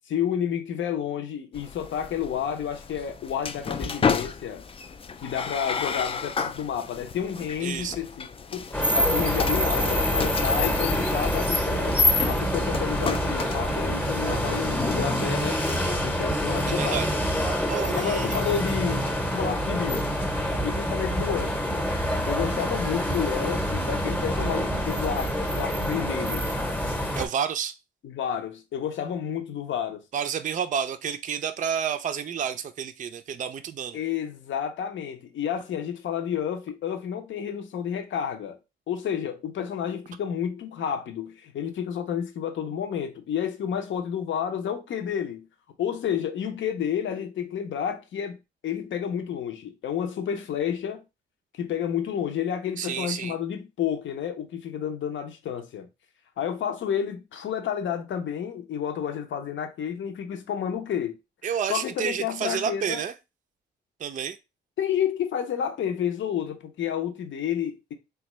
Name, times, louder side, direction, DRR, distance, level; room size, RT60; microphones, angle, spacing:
voice 1, 0.1-4.7 5.2-8.3 8.5-8.6 8.9-15.6 16.0-17.2 17.9-19.0 19.3-20.1 20.6-21.8 22.3-26.5 28.0-30.0 33.9-38.6 38.9-45.5 45.8-48.4 48.6-51.0 51.6-55.9 56.4-61.2 61.7-63.0 64.8-67.9, left 8 dB, 70° left, 0.7 m, -30 dB
sound 1, 1.5-15.8, left 5 dB, 30° left, 0.3 m, -33 dB
voice 2, 7.6-8.0 16.7-17.1 17.7-18.4 27.2-27.7 30.1-34.0 52.8-53.3 61.4-63.1 64.0-64.4, right 8 dB, 40° right, 0.4 m, -30 dB
sound 2, 8.7-27.3, equal, 10° left, 0.8 m, -26 dB
3.4 x 2.4 x 3.0 m
cardioid pair, 70°, 20 cm